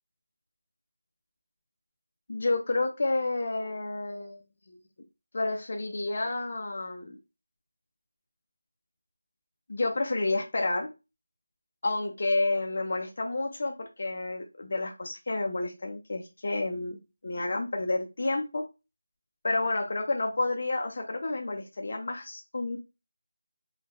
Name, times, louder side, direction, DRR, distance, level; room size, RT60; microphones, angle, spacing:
voice 1, 2.3-4.4 4.7-4.8 5.3-7.2 9.7-10.9 11.8-17.0 17.2-18.6 19.4-22.8, left 2 dB, 35° left, 2 dB, 0.4 m, -30 dB
3.8 x 2.1 x 2.8 m, 0.26 s
figure-of-eight pair, 180°, 0 cm